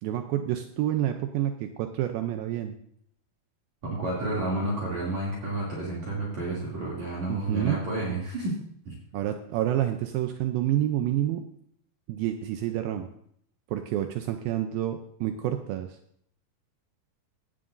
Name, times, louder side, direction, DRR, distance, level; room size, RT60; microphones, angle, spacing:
voice 1, 0.0-2.7 7.3-7.8 9.1-11.4 12.1-13.1 13.7-15.9, right 12 dB, 80° right, 6 dB, 2.4 m, -28 dB
voice 2, 3.8-8.6 8.9-9.0, right 1 dB, 50° right, -6 dB, 3.8 m, -30 dB
16.5 x 11.5 x 2.6 m, 0.68 s
omnidirectional pair, 4.3 m